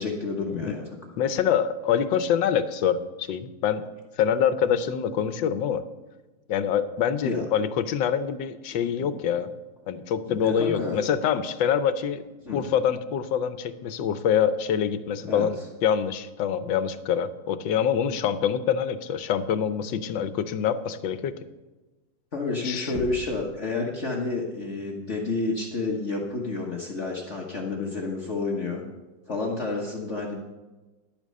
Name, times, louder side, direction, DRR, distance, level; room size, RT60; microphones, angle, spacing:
voice 1, 0.0-1.1 7.2-7.5 8.8-9.1 10.3-11.0 12.4-12.6 15.2-15.5 16.6-16.7 22.3-28.8 29.3-30.4, left 3 dB, 40° left, -1 dB, 1.5 m, -30 dB
voice 2, 1.2-3.8 4.2-5.8 6.5-9.5 9.9-12.2 12.5-21.3 22.6-22.9, left 8 dB, 85° left, 11 dB, 1.5 m, -25 dB
Knock, 22.9-23.6, equal, 10° right, 1.0 m, -39 dB
11.5 x 8.8 x 6.5 m, 1.2 s
omnidirectional pair, 2.0 m